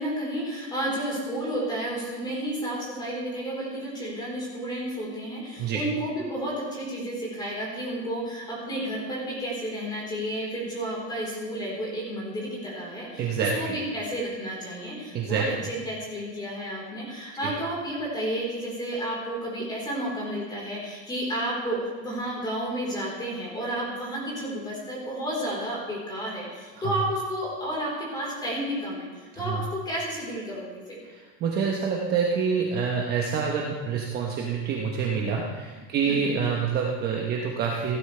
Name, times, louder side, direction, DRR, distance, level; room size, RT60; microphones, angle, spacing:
voice 1, 0.0-31.0 36.0-36.4, right 1 dB, 10° left, -5 dB, 4.0 m, -31 dB
voice 2, 13.2-13.7 15.1-15.5 17.4-17.5 29.4-29.6 31.1-38.0, right 6 dB, 25° right, -1 dB, 1.0 m, -27 dB
16.0 x 12.0 x 3.3 m, 1.4 s
supercardioid pair, 170°, 38 cm